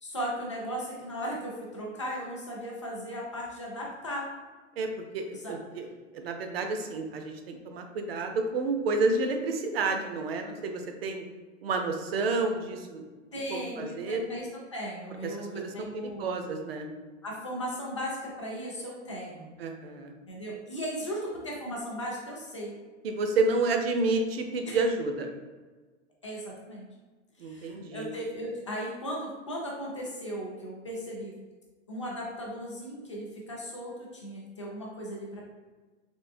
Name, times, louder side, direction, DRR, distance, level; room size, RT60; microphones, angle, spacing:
voice 1, 0.0-4.3 5.3-5.5 13.3-16.3 17.2-19.5 20.3-22.7 24.7-24.8 26.2-26.8 27.4-31.3 31.9-35.4, equal, 25° left, -3 dB, 0.4 m, -37 dB
voice 2, 5.1-5.9 6.2-11.2 11.6-13.0 13.5-14.3 15.2-16.9 19.6-20.1 23.0-25.3 27.4-28.1, right 3 dB, 55° right, 4 dB, 0.5 m, -30 dB
3.5 x 3.1 x 2.5 m, 1.3 s
hypercardioid pair, 180°, 36 cm